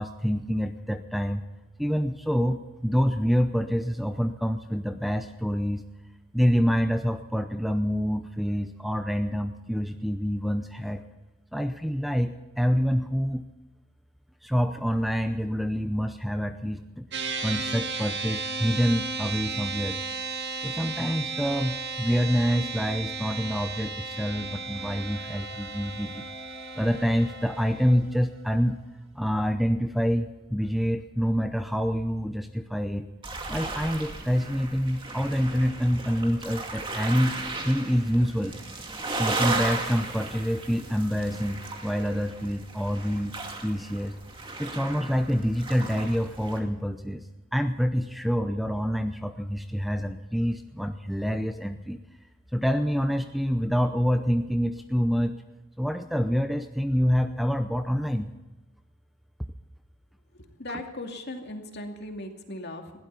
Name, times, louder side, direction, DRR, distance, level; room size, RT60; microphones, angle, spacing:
voice 1, 0.0-1.4 1.8-5.8 6.3-11.0 11.5-13.4 14.4-17.1 17.4-20.0 20.6-26.3 26.8-28.8 29.1-33.1 33.5-37.3 37.6-38.6 39.2-43.4 43.6-44.2 44.6-47.2 47.5-52.0 52.5-55.4 55.8-58.3, equal, ahead, 7 dB, 0.6 m, -26 dB
sound 1, 17.1-27.9, right 4 dB, 55° right, 2.0 m, -34 dB
sound 2, 24.3-29.5, right 4 dB, 85° right, 6.5 m, -52 dB
sound 3, 33.2-46.6, right 3 dB, 25° right, 2.4 m, -35 dB
voice 2, 60.3-63.0, left 1 dB, 50° left, 3 dB, 2.4 m, -38 dB
20.5 x 16.5 x 4.0 m, 1.1 s
head